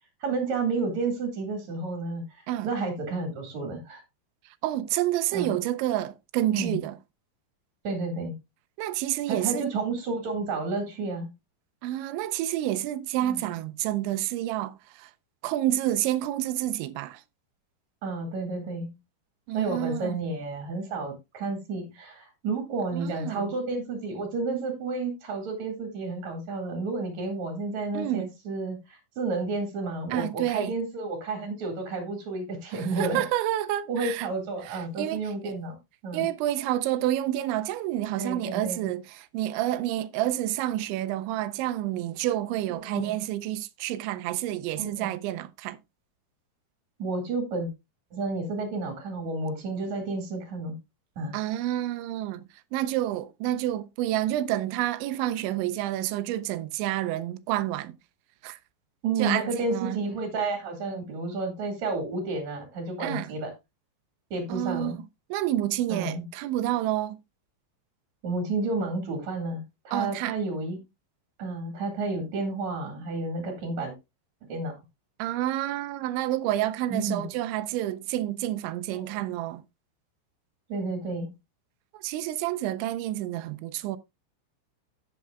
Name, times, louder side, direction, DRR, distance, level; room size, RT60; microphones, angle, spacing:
voice 1, 0.2-4.0 5.3-5.5 6.5-6.8 7.8-8.3 9.3-11.3 13.2-13.5 18.0-18.9 19.5-33.2 33.9-35.8 36.0-36.3 38.2-38.9 42.7-43.2 44.7-45.1 47.0-47.7 48.1-50.7 51.2-51.3 59.0-63.5 64.3-65.0 65.9-66.2 68.2-70.8 71.4-73.9 74.5-74.7 76.9-77.3 79.0-79.1 80.7-81.3, right 3 dB, 50° right, 2.7 m, -31 dB
voice 2, 4.6-7.0 8.8-9.7 11.8-15.1 15.4-17.2 19.5-20.2 22.9-23.5 27.9-28.3 30.1-30.7 32.7-34.3 34.7-35.5 36.1-45.8 51.3-52.4 52.7-58.0 58.4-58.6 59.2-60.0 63.0-63.3 64.5-65.0 65.3-67.2 69.9-70.4 75.2-79.6 81.9-84.0, right 13 dB, 85° right, 2.9 m, -29 dB
13.5 x 8.2 x 2.3 m
omnidirectional pair, 5.3 m